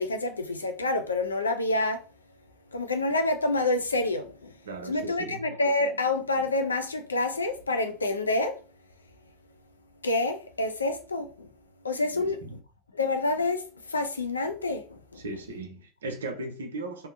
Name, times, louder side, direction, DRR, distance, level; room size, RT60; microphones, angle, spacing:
voice 1, 0.0-2.0 2.7-4.5 4.9-8.6 10.0-11.5 11.8-12.6 12.9-15.2, left 2 dB, 85° left, 0.3 m, -28 dB
voice 2, 4.7-5.6 12.1-12.6 15.1-17.1, right 2 dB, 80° right, 0.5 m, -37 dB
2.7 x 2.0 x 2.5 m
figure-of-eight pair, 70°, 0 cm